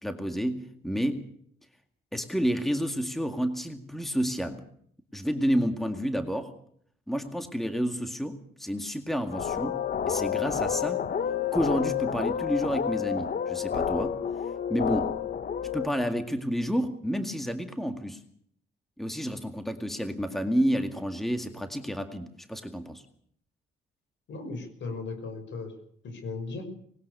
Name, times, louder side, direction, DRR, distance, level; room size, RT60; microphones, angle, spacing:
voice 1, 0.0-1.3 2.1-4.6 5.1-6.5 7.1-9.8 10.1-11.0 11.5-14.2 14.7-15.1 15.7-18.2 19.0-23.0, equal, ahead, 7 dB, 2.1 m, -30 dB
sound 1, 9.3-15.9, left 8 dB, 50° left, 1.1 m, -29 dB
voice 2, 24.3-25.7 26.0-26.7, left 3 dB, 65° left, 7 dB, 6.3 m, -36 dB
20.0 x 19.0 x 6.8 m, 0.64 s
cardioid pair, 90°, 20 cm